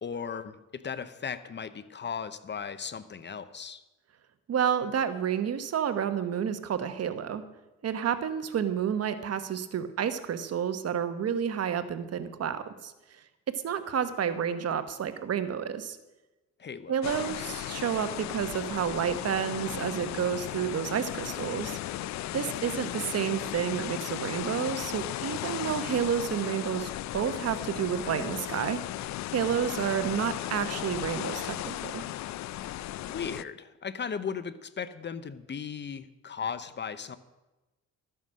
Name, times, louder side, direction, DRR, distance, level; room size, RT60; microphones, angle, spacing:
voice 1, 0.0-3.8 16.6-17.0 33.1-37.2, left 6 dB, 35° left, 14 dB, 0.8 m, -37 dB
voice 2, 4.5-7.4 7.8-13.2 13.6-16.0 16.9-21.8 22.3-28.8 29.3-32.0, right 8 dB, 55° right, 11 dB, 1.1 m, -30 dB
sound 1, 17.0-33.4, left 14 dB, 65° left, 0.4 m, -36 dB
13.0 x 9.3 x 6.4 m, 1.1 s
cardioid pair, 90°, 30 cm